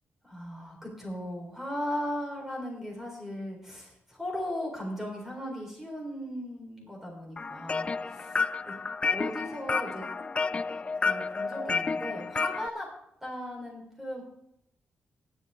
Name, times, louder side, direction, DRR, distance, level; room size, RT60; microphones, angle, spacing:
voice 1, 0.2-8.8 9.1-10.1 10.9-12.9 13.2-14.2, equal, 10° right, -1 dB, 4.0 m, -37 dB
sound 1, 7.4-12.7, left 4 dB, 30° left, 0.4 m, -31 dB
19.5 x 8.4 x 3.6 m, 0.75 s
wide cardioid pair, 120°, 4 cm